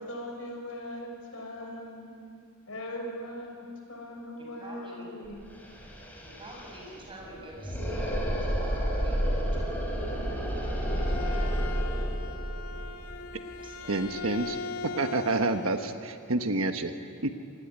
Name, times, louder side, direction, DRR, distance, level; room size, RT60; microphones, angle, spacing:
voice 1, 0.0-2.1 2.7-5.5, left 1 dB, 70° left, 2 dB, 6.4 m, -40 dB
voice 2, 4.4-5.1 6.4-8.1 8.4-10.2 10.9-11.5 13.5-14.0, right 1 dB, 25° right, -1 dB, 7.5 m, -47 dB
sound 1, 5.2-5.3 5.5-14.4, equal, 10° left, 5.5 m, -31 dB
Bowed string instrument, 10.5-16.0, left 4 dB, 85° left, 2.0 m, -40 dB
voice 3, 13.9-14.6 15.0-16.9 17.2-17.3, right 2 dB, 70° right, 6 dB, 1.3 m, -28 dB
27.0 x 19.5 x 9.8 m, 2.3 s
head